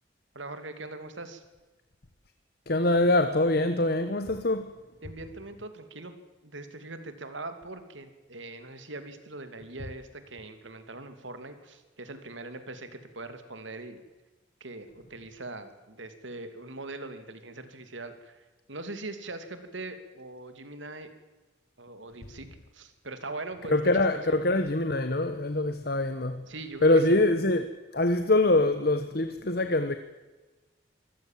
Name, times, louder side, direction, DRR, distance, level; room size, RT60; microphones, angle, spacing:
voice 1, 0.3-1.4 5.0-6.1 6.4-14.0 14.6-21.1 21.8-22.5 22.7-24.4 26.5-27.2, right 2 dB, 80° right, 2.8 m, -41 dB
voice 2, 2.7-4.7 23.7-26.4 26.8-27.7 27.9-29.9, left 2 dB, 50° left, 1.2 m, -24 dB
25.0 x 17.0 x 7.5 m
head